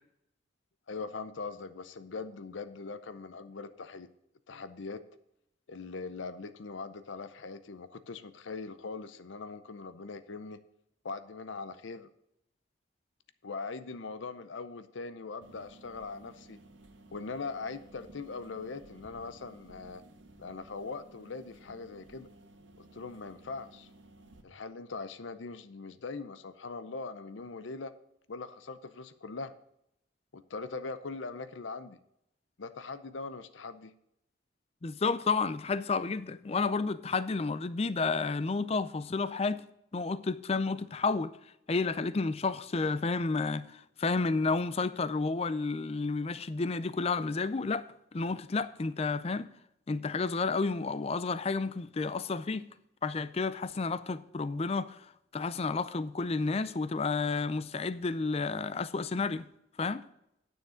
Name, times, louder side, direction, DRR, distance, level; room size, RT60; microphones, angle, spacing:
voice 1, 0.9-4.1 4.5-5.0 5.7-10.6 11.0-12.1 13.4-16.6 17.1-20.0 20.4-22.3 22.8-23.9 24.4-27.9 28.3-29.5 30.3-32.0 32.6-33.9, left 4 dB, 85° left, 0.7 m, -41 dB
sound 1, 15.4-24.4, right 2 dB, 80° right, 1.4 m, -56 dB
voice 2, 34.8-39.6 39.9-41.3 41.7-47.9 48.1-49.5 49.9-52.7 53.0-55.0 55.3-59.5 59.8-60.0, left 4 dB, 35° left, 0.5 m, -31 dB
9.8 x 6.6 x 6.3 m
head